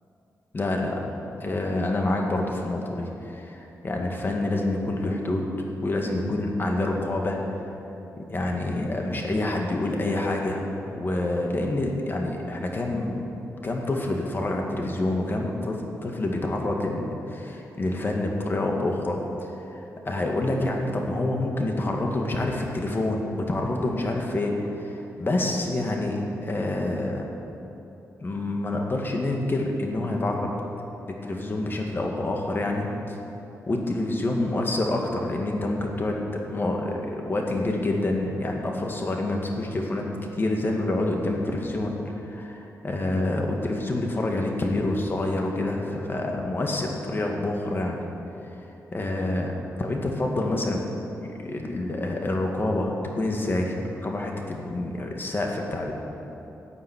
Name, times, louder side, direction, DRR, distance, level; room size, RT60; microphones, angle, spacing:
voice 1, 0.5-1.0 1.4-5.5 5.8-7.6 8.2-13.3 13.6-19.2 19.7-27.3 28.2-30.5 31.1-33.1 33.7-48.0 48.9-49.5 49.8-50.8 51.2-55.9, left 2 dB, 35° left, 1 dB, 2.0 m, -27 dB
12.0 x 7.5 x 9.4 m, 3.0 s
cardioid pair, 95°, 6 cm